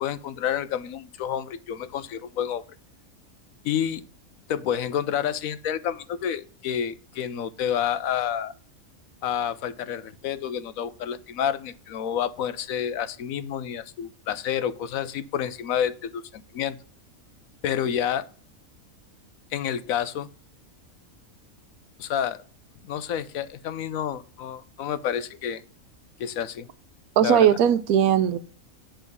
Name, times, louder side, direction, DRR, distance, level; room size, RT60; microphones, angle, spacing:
voice 1, 0.0-2.6 3.6-4.0 4.5-8.5 9.2-16.8 17.6-18.3 19.5-20.3 22.0-22.4 22.8-25.6 26.2-26.7 27.2-27.5, left 9 dB, 80° left, 14 dB, 1.1 m, -29 dB
voice 2, 27.2-28.4, right 9 dB, 85° right, 13 dB, 1.2 m, -19 dB
8.5 x 3.8 x 6.7 m, 0.43 s
omnidirectional pair, 1.5 m